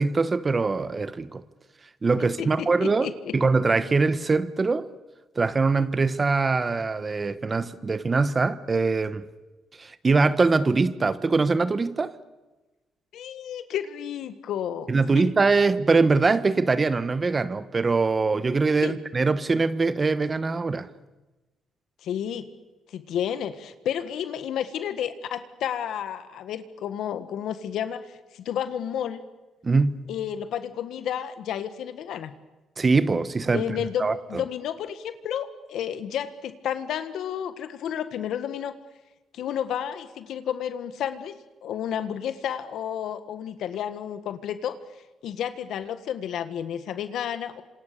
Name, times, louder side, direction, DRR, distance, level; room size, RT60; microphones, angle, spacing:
voice 1, 0.0-1.4 2.0-3.1 3.3-4.9 5.3-9.2 9.8-12.1 14.9-20.9 29.6-30.1 32.8-34.4, right 4 dB, 30° right, 1.2 m, -23 dB
voice 2, 2.2-3.4 13.1-15.3 18.8-18.9 22.0-22.5 22.9-29.2 30.1-32.3 33.5-38.8 39.3-44.8 45.2-47.6, left 9 dB, 75° left, 1.6 m, -31 dB
27.0 x 26.5 x 6.8 m
cardioid pair, 90°, 0 cm